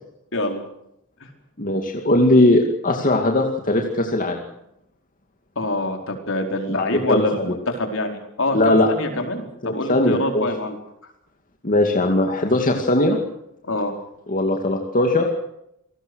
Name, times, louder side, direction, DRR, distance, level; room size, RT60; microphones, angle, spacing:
voice 1, 0.3-0.6 5.6-10.8 13.7-13.9, left 1 dB, 65° left, 4 dB, 4.7 m, -25 dB
voice 2, 1.6-4.4 6.7-7.6 8.5-8.9 9.6-10.4 11.6-13.2 14.3-15.3, left 1 dB, 40° left, 2 dB, 2.4 m, -19 dB
27.5 x 19.5 x 6.4 m, 0.80 s
head